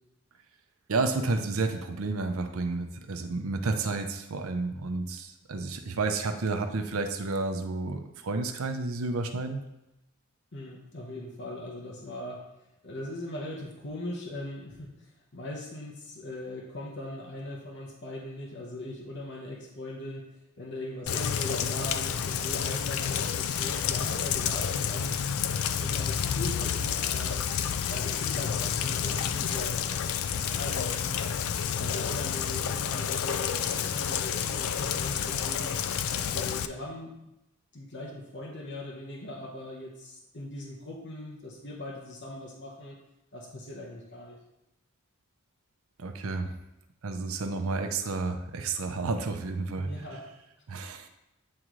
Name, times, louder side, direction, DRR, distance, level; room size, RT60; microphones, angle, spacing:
voice 1, 0.9-9.6 46.0-46.5 47.0-49.9 50.7-51.1, right 3 dB, 75° right, 6 dB, 0.6 m, -31 dB
voice 2, 10.5-12.4 12.8-20.3 20.6-25.3 25.8-27.4 27.9-29.8 30.3-31.1 31.7-35.8 36.3-37.1 37.7-43.0 43.3-44.4 49.8-50.3, left 1 dB, 55° left, -2 dB, 0.9 m, -40 dB
Rain, 21.1-36.7, left 8 dB, 75° left, 0.4 m, -30 dB
8.6 x 3.7 x 3.1 m, 0.91 s
head